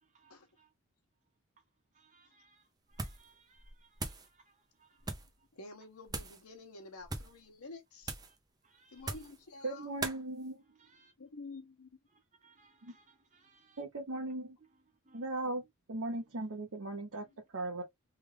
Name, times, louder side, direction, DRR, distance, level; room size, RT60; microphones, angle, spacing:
voice 1, 0.0-0.7 1.9-5.1 8.3-8.4 8.6-9.1 10.6-11.1 12.1-13.8 14.6-15.3 17.2-17.3, right 4 dB, 35° right, 1.0 m, -67 dB
sound 1, 2.9-3.3 3.6-4.3 5.0-5.3 6.1-6.4 7.0-7.4 8.0-8.4 9.0-9.4 10.0-10.2, right 3 dB, 20° right, 0.5 m, -40 dB
voice 2, 5.5-8.2 8.9-9.9 11.2-12.0 17.2-17.4, left 3 dB, 85° left, 1.0 m, -50 dB
voice 3, 9.6-10.6 12.8-12.9 13.8-14.6 15.1-15.6 15.9-17.3 17.5-17.8, right 2 dB, 65° right, 0.9 m, -38 dB
3.4 x 2.5 x 3.2 m
head